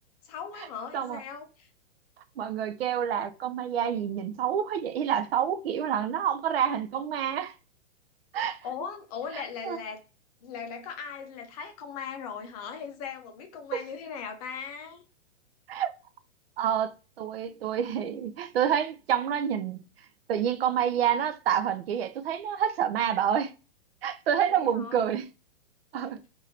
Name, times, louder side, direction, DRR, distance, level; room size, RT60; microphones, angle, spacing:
voice 1, 0.2-1.7 8.5-10.0 10.4-15.0 24.5-25.0, left 6 dB, 35° left, 0.6 m, -39 dB
voice 2, 2.4-7.5 8.3-8.6 9.6-9.8 13.7-13.8 15.7-15.9 16.6-19.8 20.3-23.5 24.0-25.3 25.9-26.2, right 9 dB, 60° right, 0.5 m, -28 dB
3.1 x 2.6 x 2.7 m
hypercardioid pair, 140°, 35 cm